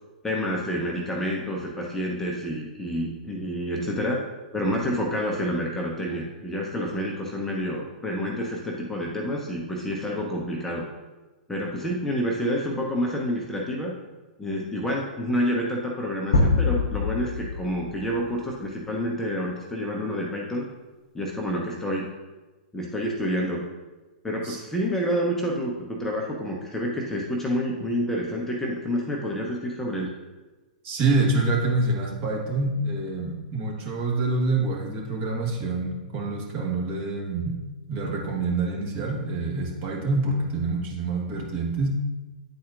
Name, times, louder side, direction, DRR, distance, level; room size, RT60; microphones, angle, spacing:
voice 1, 0.2-4.2 4.5-10.9 11.5-13.9 14.4-20.6 21.1-22.1 22.7-23.6 24.2-30.1, equal, 10° left, -2 dB, 0.8 m, -28 dB
sound 1, 16.3-18.3, left 3 dB, 65° left, 0.9 m, -24 dB
voice 2, 30.8-37.6 37.9-41.9, right 3 dB, 40° right, -2 dB, 1.6 m, -26 dB
9.4 x 4.2 x 2.5 m, 1.2 s
figure-of-eight pair, 110°, 5 cm